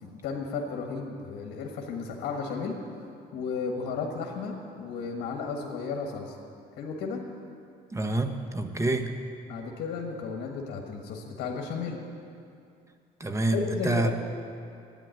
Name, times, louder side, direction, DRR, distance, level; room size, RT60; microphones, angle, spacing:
voice 1, 0.0-2.8 3.3-6.4 6.8-7.2 9.5-12.0 13.5-14.1, left 5 dB, 75° left, 1 dB, 1.5 m, -33 dB
voice 2, 7.9-9.1 13.2-14.1, right 2 dB, 15° right, 6 dB, 1.0 m, -27 dB
11.0 x 9.3 x 9.1 m, 2.5 s
cardioid pair, 110°, 17 cm